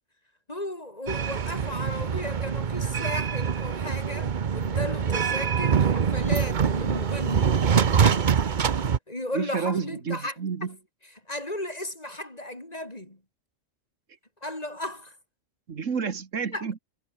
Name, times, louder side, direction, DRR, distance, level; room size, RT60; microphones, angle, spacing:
voice 1, 0.5-8.4 8.7-10.4 10.6-10.8 11.3-13.2 14.4-15.2 16.5-16.7, left 1 dB, 30° left, 4.4 m, -35 dB
sound 1, 1.1-9.0, right 7 dB, 45° right, 0.9 m, -24 dB
voice 2, 9.3-10.7 15.7-16.8, right 6 dB, 75° right, 1.9 m, -30 dB
omnidirectional pair, 1.3 m